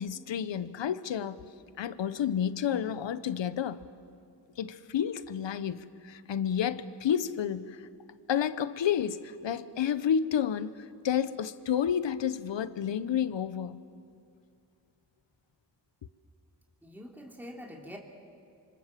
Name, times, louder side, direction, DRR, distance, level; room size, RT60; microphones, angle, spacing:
voice 1, 0.0-1.4 1.8-3.8 4.6-7.8 8.3-13.8, left 8 dB, 75° left, 1.0 m, -30 dB
voice 2, 16.8-18.0, equal, 5° right, 3.0 m, -45 dB
27.0 x 25.0 x 7.6 m
cardioid pair, 55°, 44 cm